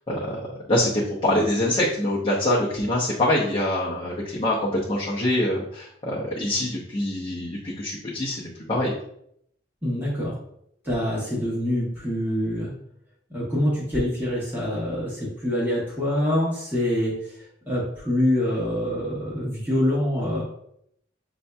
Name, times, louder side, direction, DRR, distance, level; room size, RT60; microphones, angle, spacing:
voice 1, 0.1-8.9, left 1 dB, 30° left, -6 dB, 0.7 m, -25 dB
voice 2, 9.8-10.3 10.8-12.7 13.3-17.3 17.7-20.4, left 1 dB, 10° right, -7 dB, 1.1 m, -25 dB
6.7 x 2.6 x 2.2 m, 0.71 s
head